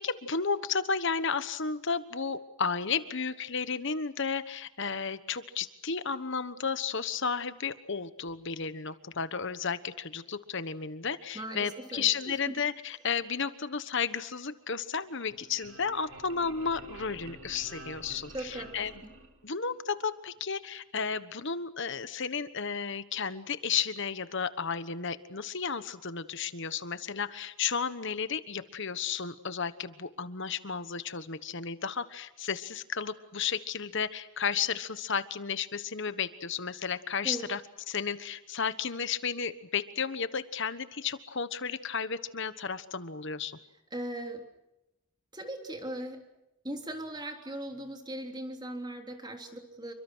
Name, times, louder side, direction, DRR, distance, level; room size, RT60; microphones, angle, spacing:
voice 1, 0.0-18.9 19.4-37.6 37.9-43.6, left 6 dB, 55° left, 13 dB, 1.3 m, -33 dB
voice 2, 11.3-12.5 18.3-18.9 37.2-37.5 43.9-44.4 45.3-46.3 46.6-49.9, right 1 dB, 20° right, 4 dB, 3.4 m, -39 dB
sound 1, 15.0-19.7, right 3 dB, 70° right, 3.7 m, -49 dB
28.5 x 24.5 x 6.3 m, 0.93 s
head